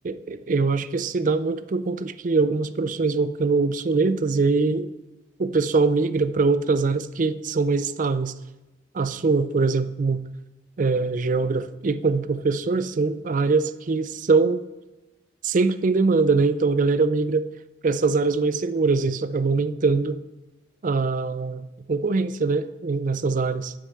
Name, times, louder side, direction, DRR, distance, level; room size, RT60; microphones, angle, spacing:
voice 1, 0.0-4.9 5.4-8.3 8.9-10.2 10.8-14.6 15.4-17.5 17.8-20.2 20.8-23.7, right 4 dB, 45° right, 13 dB, 0.4 m, -23 dB
7.9 x 6.4 x 7.6 m, 1.1 s
head